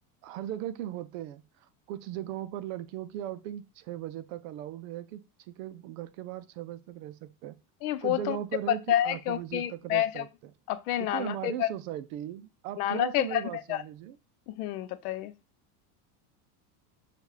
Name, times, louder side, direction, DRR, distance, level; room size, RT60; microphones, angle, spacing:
voice 1, 0.2-1.4 1.9-7.6 8.0-10.3 11.0-14.2, right 12 dB, 60° right, 0.5 m, -38 dB
voice 2, 7.8-8.4 8.7-10.3 10.7-11.7 12.8-13.8 14.5-15.3, left 12 dB, 70° left, 0.6 m, -29 dB
6.7 x 2.4 x 3.2 m
cardioid pair, 170°, 46 cm